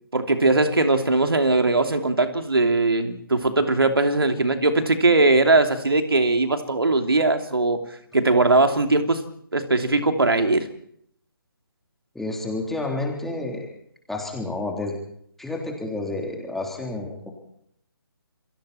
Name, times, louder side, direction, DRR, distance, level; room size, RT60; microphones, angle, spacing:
voice 1, 0.1-7.8 8.1-9.2 9.5-10.7, right 2 dB, 70° right, 6 dB, 3.0 m, -20 dB
voice 2, 12.1-13.7 14.1-15.0 15.4-17.3, left 2 dB, ahead, 0 dB, 3.7 m, -30 dB
29.5 x 23.5 x 4.4 m, 0.69 s
figure-of-eight pair, 145°, 13 cm